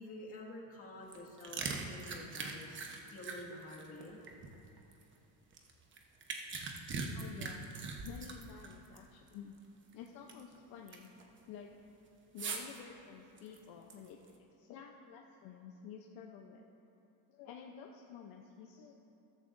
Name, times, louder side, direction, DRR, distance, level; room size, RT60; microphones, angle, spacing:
voice 1, 0.0-2.8 3.1-4.2, left 1 dB, 35° left, -3 dB, 2.0 m, -49 dB
sound 1, 1.0-5.0 5.5-9.0 9.3-9.4 9.9-10.5 10.9-11.2 12.4-12.8 13.4-14.3, right 4 dB, 30° right, 1.0 m, -42 dB
voice 2, 7.1-9.5 9.9-11.1 11.5-11.7 12.3-16.6 17.3-18.9, left 7 dB, 65° left, 1 dB, 0.8 m, -51 dB
14.0 x 13.0 x 2.6 m, 2.9 s
cardioid pair, 135°, 39 cm